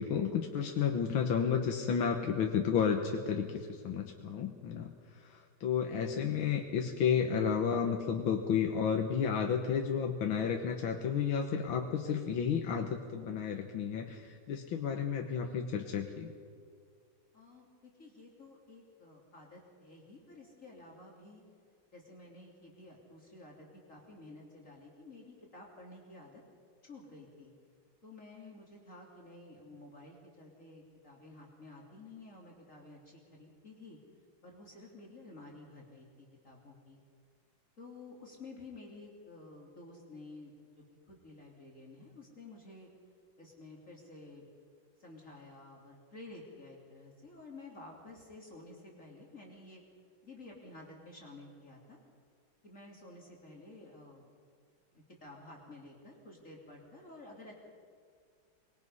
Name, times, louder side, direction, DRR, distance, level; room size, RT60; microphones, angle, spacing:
voice 1, 0.0-16.3, left 7 dB, 80° left, 3 dB, 2.0 m, -32 dB
voice 2, 17.3-21.4 21.9-26.4 26.8-27.5 28.0-34.0 34.4-37.0 37.8-42.9 43.4-44.4 45.0-49.8 50.2-52.0 52.6-54.3 54.9-57.6, left 2 dB, 40° left, -2 dB, 3.2 m, -52 dB
25.0 x 21.5 x 5.5 m, 2.2 s
omnidirectional pair, 2.2 m